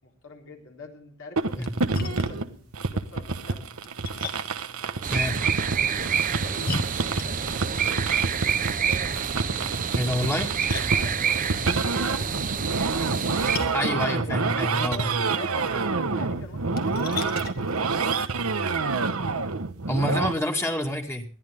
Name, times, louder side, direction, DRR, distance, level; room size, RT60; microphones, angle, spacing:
voice 1, 0.0-3.6 5.7-6.8 7.2-8.1 10.8-14.3 14.7-17.2, left 2 dB, 65° left, 0 dB, 4.1 m, -44 dB
sound 1, 1.4-20.3, right 4 dB, 90° right, 1.2 m, -28 dB
Splash splatter, 1.5-18.6, left 3 dB, 45° left, 1.9 m, -41 dB
sound 2, 5.0-13.6, right 7 dB, 40° right, 0.7 m, -27 dB
voice 2, 9.9-10.5 13.7-15.1 19.9-21.3, left 1 dB, 10° left, 2 dB, 2.3 m, -27 dB
21.0 x 14.0 x 3.5 m, 0.38 s
head